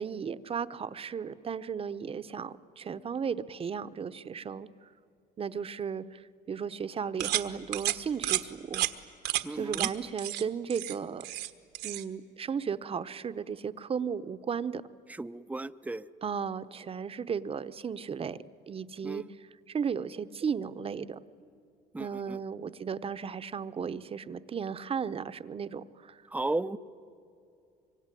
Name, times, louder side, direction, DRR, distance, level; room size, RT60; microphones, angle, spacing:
voice 1, 0.0-4.7 5.4-8.8 9.5-11.3 11.8-14.8 16.2-18.4 18.7-21.2 22.0-26.2, right 6 dB, 35° right, 13 dB, 0.9 m, -35 dB
sound 1, 7.2-7.5 7.7-8.0 8.2-8.4 8.7-8.9 9.2-9.4 9.7-9.9 10.2-10.4 10.7-11.5 11.7-12.0, right 14 dB, 80° right, 1.4 m, -30 dB
voice 2, 9.4-9.9 15.2-16.1 19.0-19.2 21.9-22.4 26.3-26.8, right 2 dB, 10° right, 14 dB, 0.7 m, -34 dB
25.0 x 24.0 x 9.9 m, 2.6 s
cardioid pair, 110°, 17 cm